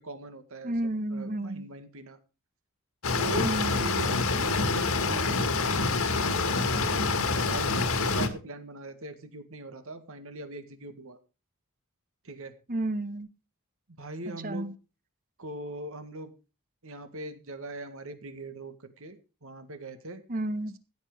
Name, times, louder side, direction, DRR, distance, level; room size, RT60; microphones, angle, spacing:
voice 1, 0.0-0.7 1.1-2.2 3.2-5.9 6.1-6.8 7.2-11.2 12.2-12.5 14.0-14.7 15.4-16.3 16.8-20.2, right 2 dB, 65° right, 1.9 m, -41 dB
voice 2, 0.6-1.7 3.4-3.9 12.7-13.3 14.4-14.7 20.3-20.7, right 1 dB, 40° right, 1.1 m, -31 dB
sound 1, 3.0-8.3, left 3 dB, 70° left, 1.8 m, -26 dB
15.5 x 8.6 x 4.8 m
head